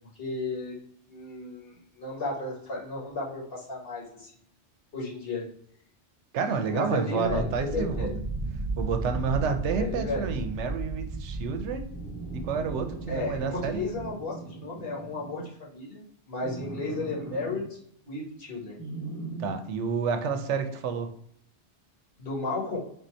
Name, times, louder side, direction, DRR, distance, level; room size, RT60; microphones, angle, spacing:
voice 1, 0.1-0.7 1.1-4.3 4.9-5.5 6.4-8.1 9.8-10.4 13.1-17.8 18.0-18.8 22.2-22.8, left 2 dB, 55° left, -3 dB, 1.3 m, -34 dB
voice 2, 6.3-8.1 8.8-11.9 12.3-13.8 19.4-21.1, right 5 dB, 75° right, 7 dB, 0.9 m, -29 dB
sound 1, 7.2-14.1, right 3 dB, 15° right, 0.7 m, -34 dB
sound 2, 11.9-15.5 16.4-17.6 18.8-19.5, right 2 dB, 15° left, 0.9 m, -40 dB
3.7 x 2.7 x 4.3 m, 0.67 s
omnidirectional pair, 1.2 m